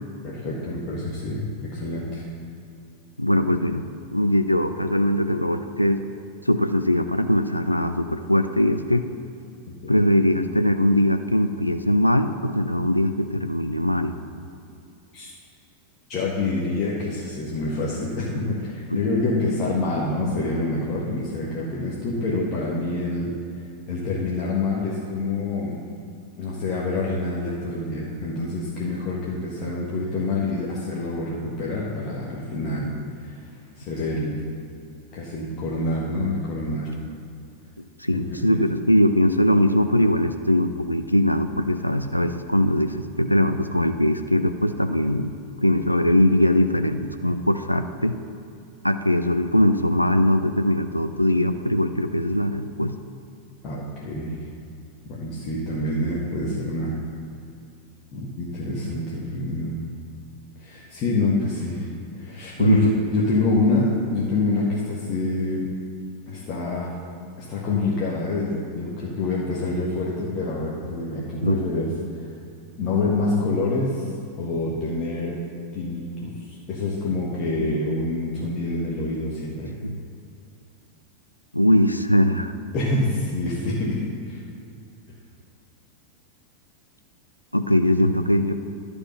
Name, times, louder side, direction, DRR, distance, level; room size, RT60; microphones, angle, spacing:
voice 1, 0.2-2.2 9.7-9.9 15.1-15.3 16.1-23.3 23.9-25.8 26.4-32.9 33.2-33.4 33.8-34.4 35.1-36.9 38.1-38.2 38.5-38.6 53.6-54.4 55.1-57.0 58.1-59.8 60.6-61.9 62.2-65.7 66.3-66.9 67.4-72.3 72.8-74.1 74.4-75.4 75.7-79.7 82.7-84.4, left 2 dB, 35° left, -6 dB, 1.6 m, -26 dB
voice 2, 3.2-3.9 4.1-6.0 6.5-9.1 9.9-14.2 18.9-19.0 38.0-45.3 45.6-48.2 48.8-52.9 62.6-62.9 71.4-71.6 79.8-80.0 81.5-82.5 87.5-88.5, equal, 90° left, 9 dB, 0.4 m, -21 dB
11.5 x 5.3 x 5.7 m, 2.5 s
figure-of-eight pair, 90°, 0 cm